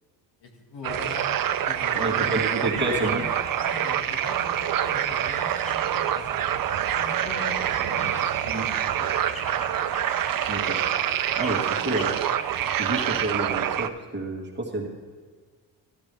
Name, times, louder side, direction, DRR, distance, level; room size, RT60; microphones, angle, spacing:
voice 1, 0.4-1.3 1.7-2.3 2.6-3.2 3.6-6.6 6.9-9.8, left 3 dB, 70° left, 1 dB, 1.9 m, -41 dB
sound 1, 0.8-13.9, right 10 dB, 50° right, 0.6 m, -26 dB
sound 2, 1.1-13.1, left 1 dB, 15° left, 1.1 m, -46 dB
voice 2, 1.9-3.2 8.5-8.7 10.5-10.8 11.4-12.2 12.8-14.9, right 2 dB, 25° right, 0 dB, 1.8 m, -29 dB
12.5 x 12.0 x 3.4 m, 1.5 s
cardioid pair, 85°, 43 cm